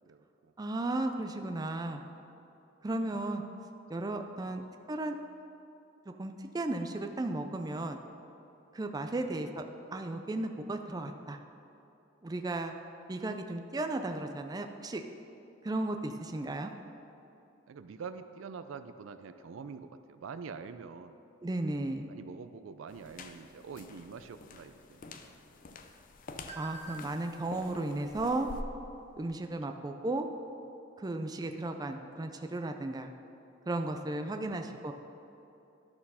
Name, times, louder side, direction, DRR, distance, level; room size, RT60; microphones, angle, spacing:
voice 1, 0.1-0.5 3.0-3.2 4.4-4.7 9.1-9.3 13.2-13.3 17.7-21.2 22.1-25.1 34.4-34.9, right 5 dB, 85° right, 11 dB, 0.4 m, -46 dB
voice 2, 0.6-2.0 2.8-3.4 3.9-4.6 4.9-5.2 6.2-8.0 8.7-9.6 9.9-11.4 12.2-12.7 13.1-15.0 15.6-16.7 21.4-22.1 26.6-28.5 29.2-30.3 31.0-33.1 33.7-34.9, right 2 dB, 20° right, 6 dB, 0.4 m, -34 dB
sound 1, 22.9-28.6, left 3 dB, 45° left, 0.5 m, -49 dB
sound 2, 25.3-29.5, right 2 dB, 35° right, 2.0 m, -53 dB
11.5 x 4.4 x 5.6 m, 2.8 s
head